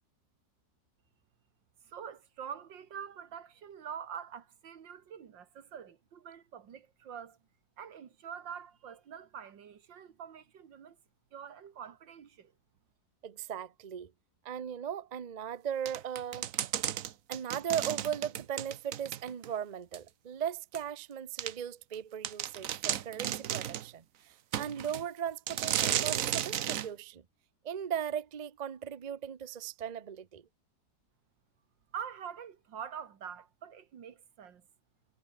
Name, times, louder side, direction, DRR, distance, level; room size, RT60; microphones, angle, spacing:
voice 1, 1.8-7.4 7.8-11.0 11.3-12.5 31.9-34.6, right 8 dB, 90° right, 2.3 m, -45 dB
voice 2, 13.2-14.1 14.4-16.5 17.3-27.2 27.6-30.4, right 8 dB, 40° right, 0.6 m, -38 dB
sound 1, 15.9-19.5 19.9-20.0 20.7-20.8 21.4-21.5 21.9-22.0 22.2-23.9 24.5-25.0 25.5-26.9, right 11 dB, 55° right, 1.0 m, -34 dB
omnidirectional pair, 1.9 m